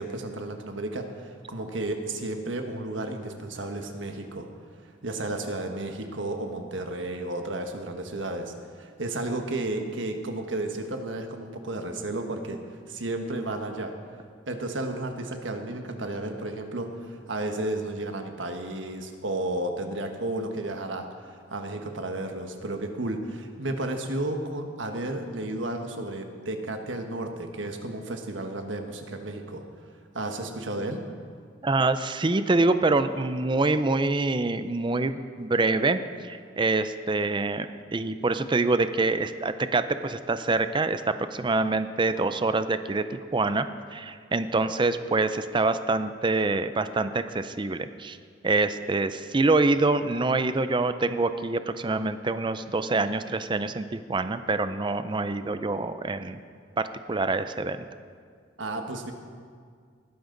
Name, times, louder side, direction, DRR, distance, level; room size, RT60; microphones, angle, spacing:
voice 1, 0.0-4.5 4.8-13.9 14.5-29.6 30.1-31.0 58.6-59.1, right 2 dB, 80° right, 5 dB, 1.4 m, -33 dB
voice 2, 31.6-37.7 37.9-43.7 43.9-48.2 48.4-56.4 56.8-57.8, right 3 dB, 25° right, 11 dB, 0.5 m, -25 dB
19.5 x 12.5 x 3.9 m, 2.1 s
head